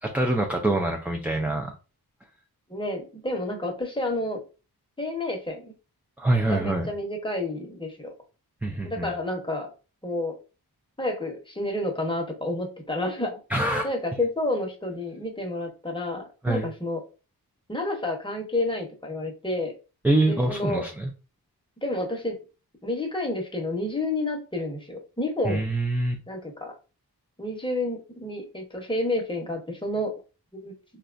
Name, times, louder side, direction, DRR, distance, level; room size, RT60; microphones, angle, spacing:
voice 1, 0.0-1.7 6.2-6.9 8.6-9.1 13.5-13.9 16.4-16.7 20.0-21.1 25.4-26.2, right 2 dB, 5° right, 1 dB, 0.4 m, -25 dB
voice 2, 2.7-4.4 5.0-5.7 6.5-8.1 8.8-9.7 10.0-10.4 11.0-13.4 13.8-17.0 17.7-19.7 20.3-20.8 21.8-22.4 22.8-25.7 26.3-26.7 27.4-30.1 30.5-30.7, left 2 dB, 15° left, 2 dB, 0.8 m, -30 dB
4.0 x 2.3 x 2.5 m, 0.33 s
wide cardioid pair, 80°, 38 cm